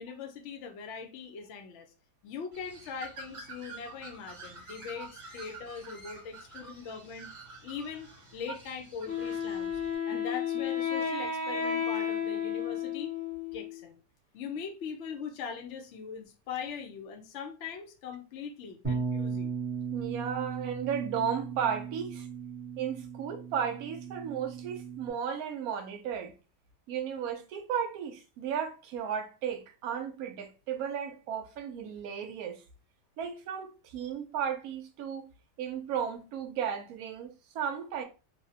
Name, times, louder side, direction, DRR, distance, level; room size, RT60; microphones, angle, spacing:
voice 1, 0.0-1.9 2.2-7.3 7.6-8.1 8.3-9.8 10.1-13.1 13.5-14.0 14.3-19.6, left 6 dB, 75° left, 0.6 m, -41 dB
Bird, 2.5-10.0, right 3 dB, 35° right, 1.1 m, -48 dB
Wind instrument woodwind instrument, 9.1-13.9, left 7 dB, 90° left, 1.4 m, -32 dB
Bass guitar, 18.8-25.1, right 5 dB, 10° right, 0.5 m, -36 dB
voice 2, 19.9-22.3 22.8-26.3 26.9-32.6 33.2-35.3 35.6-38.0, right 8 dB, 70° right, 1.0 m, -34 dB
3.4 x 2.0 x 2.7 m
omnidirectional pair, 1.9 m